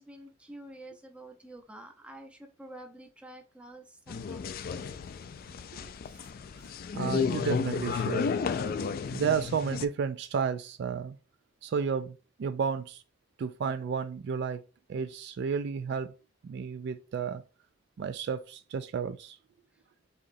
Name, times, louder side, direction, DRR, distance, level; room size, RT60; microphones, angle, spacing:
voice 1, 0.0-4.6 5.7-5.9, right 1 dB, 5° right, 0.7 m, -48 dB
sound 1, 4.1-9.9, left 5 dB, 50° left, 0.3 m, -32 dB
voice 2, 6.9-8.2 9.1-11.2 11.6-13.0 13.4-14.6 14.9-16.1 16.4-17.4 18.0-19.4, right 6 dB, 60° right, 0.3 m, -32 dB
4.8 x 3.0 x 2.6 m
head